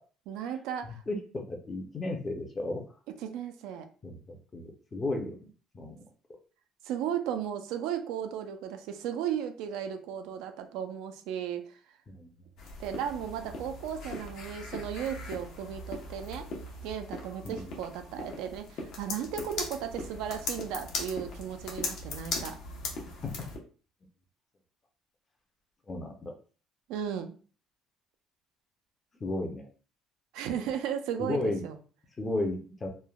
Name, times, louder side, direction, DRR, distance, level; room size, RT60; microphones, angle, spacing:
voice 1, 0.3-1.0 3.2-3.8 6.8-11.8 12.8-16.4 16.8-22.6 26.9-27.4 30.3-31.8, right 9 dB, 80° right, 7 dB, 0.4 m, -35 dB
voice 2, 0.8-2.8 4.0-5.5 5.7-6.0 12.1-12.3 17.4-17.7 25.9-26.3 29.2-29.7 31.2-31.6 32.2-32.9, left 2 dB, 20° left, 3 dB, 0.5 m, -34 dB
sound 1, 12.6-23.6, left 3 dB, 60° left, 0.7 m, -39 dB
3.1 x 2.1 x 2.2 m, 0.39 s
cardioid pair, 140°, 0 cm